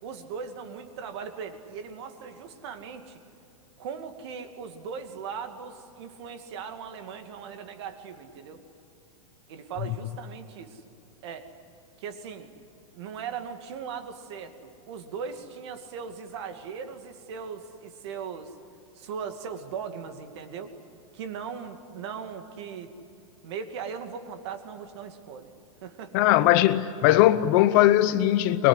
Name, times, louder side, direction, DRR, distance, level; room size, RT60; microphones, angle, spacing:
voice 1, 0.0-3.2 3.8-8.6 9.5-10.8 11.2-11.5 12.0-12.5 12.9-18.5 18.9-20.7 21.1-22.9 23.4-25.5 25.8-26.5, right 6 dB, 50° right, 2.4 m, -38 dB
voice 2, 26.1-28.7, left 14 dB, 35° left, 0.7 m, -19 dB
24.0 x 22.0 x 9.9 m
supercardioid pair, 165°, 18 cm